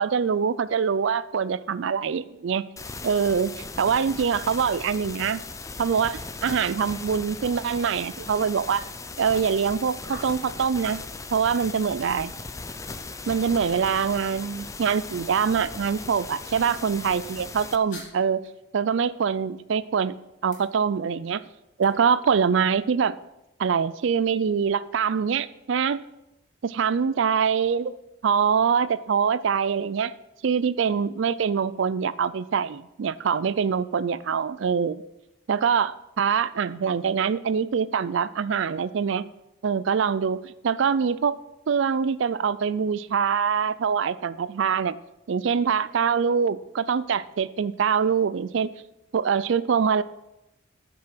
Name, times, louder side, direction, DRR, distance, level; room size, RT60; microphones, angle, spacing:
voice 1, 0.0-2.6 3.0-5.4 5.8-8.9 9.2-11.0 11.3-12.3 13.3-18.4 18.7-20.1 20.4-21.4 21.8-23.2 23.6-26.0 26.6-28.0 28.2-30.1 30.4-35.0 35.5-39.2 39.6-41.3 41.7-45.0 45.3-48.7 49.1-50.0, right 6 dB, 60° right, 16 dB, 0.4 m, -24 dB
sound 1, 2.8-17.8, left 3 dB, 15° left, 0.4 m, -38 dB
sound 2, 5.5-23.3, left 3 dB, 35° left, 2.9 m, -54 dB
13.0 x 6.1 x 5.9 m, 0.91 s
head